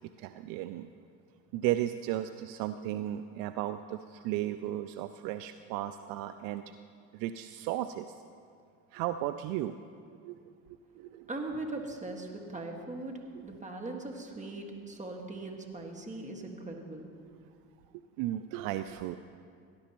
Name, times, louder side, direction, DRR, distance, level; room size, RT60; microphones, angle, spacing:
voice 1, 0.2-0.9 1.5-6.7 7.1-8.2 8.9-9.7 10.1-10.5 10.9-11.3 17.2-17.4 18.2-19.2, right 13 dB, 65° right, 11 dB, 0.5 m, -35 dB
voice 2, 11.3-17.1, right 2 dB, 20° right, 2 dB, 1.8 m, -40 dB
17.5 x 11.5 x 3.0 m, 2.2 s
hypercardioid pair, 75°, 37 cm